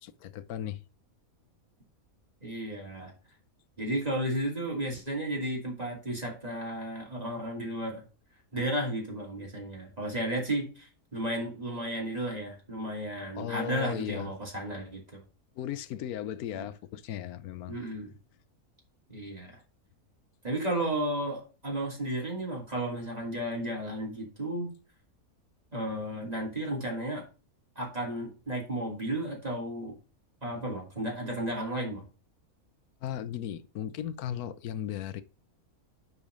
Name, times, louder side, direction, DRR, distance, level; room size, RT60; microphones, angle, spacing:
voice 1, 0.0-0.8 13.4-14.3 15.6-17.8 33.0-35.2, left 10 dB, 80° left, 1.2 m, -36 dB
voice 2, 2.4-3.1 3.8-8.0 8.5-15.2 16.5-16.7 17.7-18.1 19.1-19.6 20.4-24.7 25.7-27.2 27.8-29.9 30.4-32.0, right 1 dB, 25° right, 2.8 m, -33 dB
9.8 x 4.1 x 5.1 m
omnidirectional pair, 1.6 m